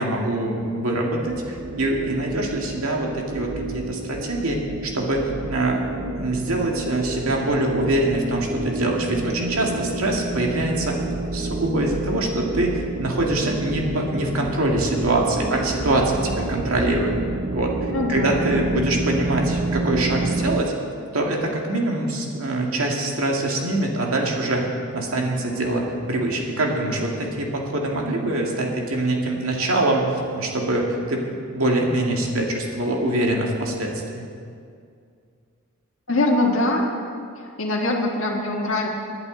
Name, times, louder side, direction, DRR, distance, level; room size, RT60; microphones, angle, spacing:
voice 1, 0.0-5.8 6.1-11.0 11.3-17.1 17.5-20.7 21.1-24.7 24.9-31.2 31.5-34.3, right 1 dB, 85° right, 0 dB, 2.1 m, -24 dB
sound 1, 1.3-20.6, right 2 dB, 40° right, 0.5 m, -29 dB
voice 2, 17.9-18.8 36.1-36.9 37.3-38.9, left 2 dB, 70° left, -2 dB, 1.5 m, -23 dB
20.0 x 10.5 x 3.9 m, 2.3 s
head